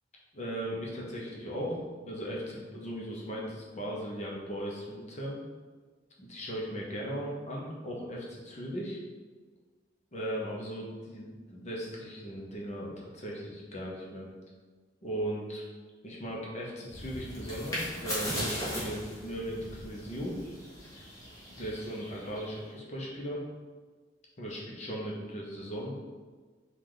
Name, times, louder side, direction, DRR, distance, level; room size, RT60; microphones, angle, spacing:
voice 1, 0.3-5.4 6.2-9.0 10.1-14.3 15.0-15.6 16.0-20.3 21.5-23.4 24.4-25.9, equal, 40° left, -3 dB, 0.8 m, -37 dB
sound 1, 16.9-22.6, equal, 20° left, 1.4 m, -38 dB
4.8 x 2.5 x 3.8 m, 1.4 s
head